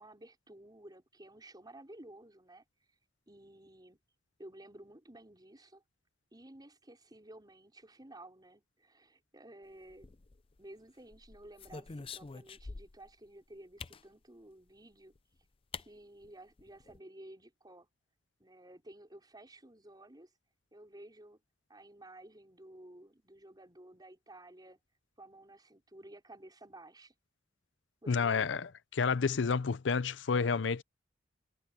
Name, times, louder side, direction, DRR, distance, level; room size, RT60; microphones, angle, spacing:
voice 1, 0.0-2.6 3.3-4.0 4.4-5.8 6.3-10.2 10.6-15.1 15.8-17.9 18.4-20.3 20.7-21.4 21.7-24.8 25.2-27.1 28.0-28.6, right 1 dB, 25° right, 5.3 m, -54 dB
sound 1, 9.9-10.6 11.1-13.1 13.8-14.1 15.2-15.3 15.7-15.9 16.2-16.3 16.6-17.0, left 4 dB, 30° left, 0.5 m, -46 dB
voice 2, 28.1-28.7 29.0-30.8, left 5 dB, 75° left, 0.6 m, -29 dB
head